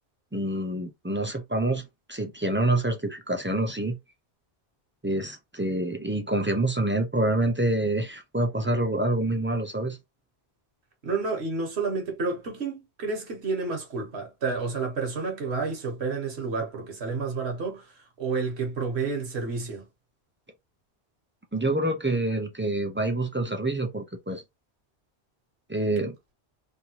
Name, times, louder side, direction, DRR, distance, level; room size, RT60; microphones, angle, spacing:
voice 1, 0.3-4.0 5.0-10.0 21.5-24.4 25.7-26.2, right 1 dB, 15° right, 0.4 m, -27 dB
voice 2, 11.0-19.9, right 4 dB, 80° right, 1.5 m, -30 dB
3.5 x 2.3 x 2.8 m
omnidirectional pair, 1.1 m